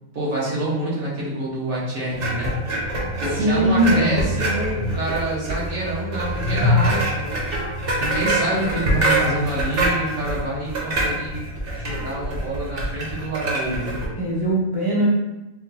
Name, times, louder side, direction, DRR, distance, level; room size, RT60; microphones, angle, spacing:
voice 1, 0.1-2.6 3.2-7.3 8.0-14.0, right 1 dB, 75° right, -7 dB, 1.6 m, -27 dB
sound 1, 2.1-14.1, right 1 dB, 45° right, 1.0 m, -25 dB
voice 2, 3.4-4.3 14.2-15.1, right 1 dB, 30° left, -6 dB, 0.4 m, -20 dB
4.5 x 2.2 x 2.7 m, 1.0 s
omnidirectional pair, 1.5 m